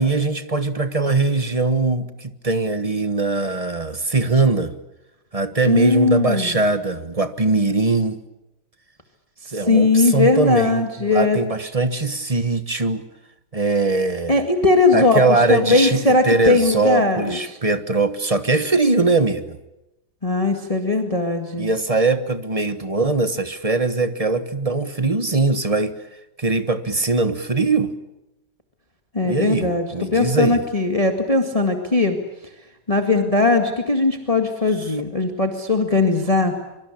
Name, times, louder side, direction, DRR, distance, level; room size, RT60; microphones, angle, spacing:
voice 1, 0.0-4.7 5.3-8.2 9.5-13.0 13.5-14.4 14.9-19.6 21.6-26.0 26.4-27.9 29.2-30.6, right 3 dB, 20° right, 11 dB, 1.1 m, -21 dB
voice 2, 5.6-6.6 9.7-11.4 14.3-15.2 15.5-17.6 20.2-21.7 29.1-32.2 32.9-36.6, left 3 dB, 20° left, 5 dB, 2.0 m, -19 dB
24.5 x 24.5 x 8.5 m, 0.93 s
omnidirectional pair, 2.0 m